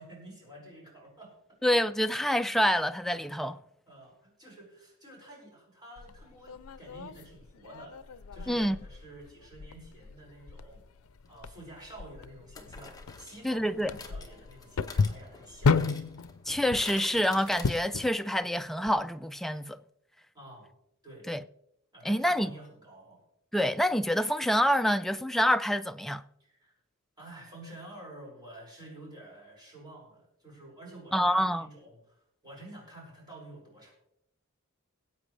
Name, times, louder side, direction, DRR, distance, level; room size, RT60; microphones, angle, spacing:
voice 1, 0.0-1.3 3.9-10.8 11.3-15.8 20.3-20.7 21.0-21.3 21.9-23.2 26.4-26.7 27.2-33.9, right 1 dB, 20° right, 5.6 m, -49 dB
voice 2, 1.6-3.6 8.5-8.8 13.4-13.9 16.5-19.8 21.3-21.4 22.0-22.5 23.5-26.2 31.1-31.7, equal, ahead, 0.3 m, -27 dB
sound 1, 6.0-18.1, left 4 dB, 90° left, 0.5 m, -34 dB
sound 2, 11.3-11.4 12.5-18.3 18.6-18.7 18.9-19.0, left 4 dB, 15° left, 1.1 m, -48 dB
21.5 x 8.3 x 3.3 m
head